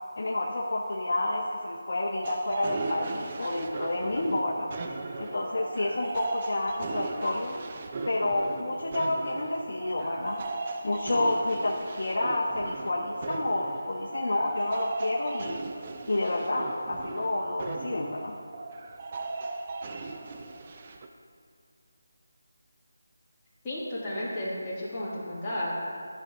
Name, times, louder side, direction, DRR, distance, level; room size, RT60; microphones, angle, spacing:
voice 1, 0.2-4.7 5.2-7.5 8.0-10.5 10.8-15.6 16.1-18.3, left 2 dB, 60° left, 1 dB, 0.6 m, -29 dB
sound 1, 2.2-21.1, right 3 dB, 30° right, 0.4 m, -37 dB
voice 2, 23.6-25.7, left 1 dB, 15° left, -10 dB, 1.9 m, -33 dB
11.5 x 6.1 x 2.5 m, 2.3 s
figure-of-eight pair, 165°, 0 cm